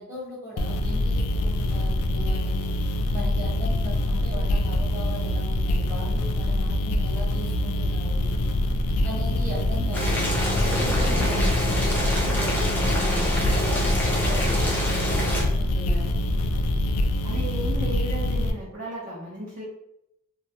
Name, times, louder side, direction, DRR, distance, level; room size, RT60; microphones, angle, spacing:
voice 1, 0.0-8.2 9.0-16.1, equal, 10° right, -8 dB, 1.0 m, -39 dB
sound 1, 0.6-18.5, left 1 dB, 90° left, 0.3 m, -25 dB
Boiling, 9.9-15.4, equal, 10° left, 0.4 m, -26 dB
voice 2, 17.2-19.6, equal, 40° right, -8 dB, 0.7 m, -34 dB
2.3 x 2.0 x 2.8 m, 0.82 s
head